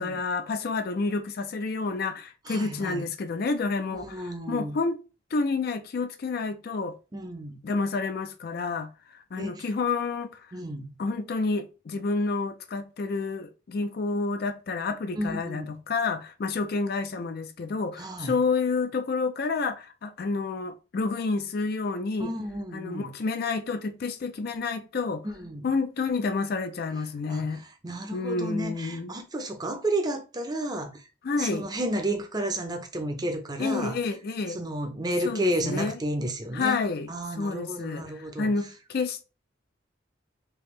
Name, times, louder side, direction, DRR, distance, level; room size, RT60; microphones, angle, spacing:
voice 1, 0.0-5.0 5.3-6.9 7.6-8.9 9.3-10.4 11.0-22.3 22.7-25.2 25.6-27.6 28.1-29.1 31.2-31.7 33.6-34.6 35.2-36.0 36.5-37.1 37.4-39.2, left 4 dB, 55° left, 0.4 m, -29 dB
voice 2, 2.4-3.0 3.9-4.8 7.1-7.6 9.4-9.7 10.5-10.9 15.1-15.7 18.0-18.4 22.2-23.1 25.2-25.7 27.3-31.1 31.4-34.0 34.5-38.5, right 1 dB, 20° right, 0.6 m, -32 dB
3.4 x 2.7 x 3.1 m
head